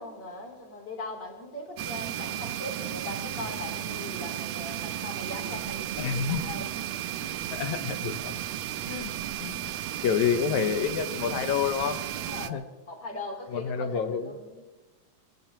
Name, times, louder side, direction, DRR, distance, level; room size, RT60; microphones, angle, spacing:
voice 1, 0.0-6.7 12.1-14.6, left 2 dB, 35° left, 0 dB, 3.8 m, -40 dB
sound 1, 1.8-12.5, right 11 dB, 75° right, 1.8 m, -34 dB
voice 2, 6.0-6.7 7.2-8.4 8.9-9.1 9.4-12.0 12.5-12.6 13.5-14.3, left 7 dB, 75° left, 9 dB, 2.4 m, -29 dB
25.0 x 16.5 x 3.0 m, 1.2 s
omnidirectional pair, 3.4 m